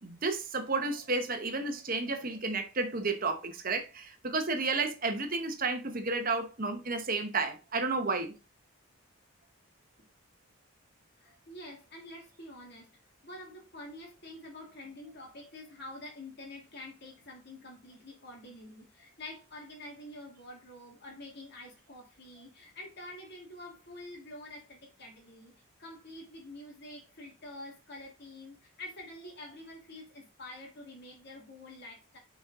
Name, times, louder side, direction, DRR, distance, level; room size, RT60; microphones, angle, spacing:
voice 1, 0.0-8.3, right 3 dB, 40° right, 1.0 m, -32 dB
voice 2, 11.2-12.9 13.2-25.5 25.8-32.2, left 1 dB, 50° left, 2.4 m, -47 dB
6.2 x 4.5 x 3.6 m
head